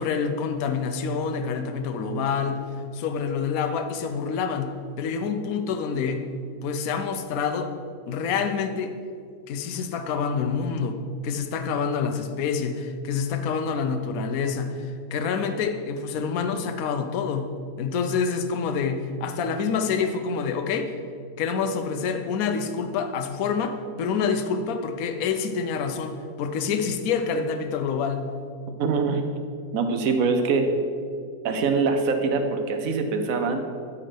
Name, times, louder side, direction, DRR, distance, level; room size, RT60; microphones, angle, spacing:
voice 1, 0.0-2.6 2.9-4.7 5.0-6.3 6.6-7.7 8.1-8.9 9.5-11.0 11.2-17.5 17.8-20.9 21.4-28.2, left 5 dB, 65° left, 7 dB, 1.1 m, -27 dB
voice 2, 28.8-29.3 29.7-30.7 31.4-33.6, right 4 dB, 60° right, 6 dB, 1.2 m, -23 dB
13.0 x 4.5 x 5.1 m, 2.3 s
omnidirectional pair, 1.8 m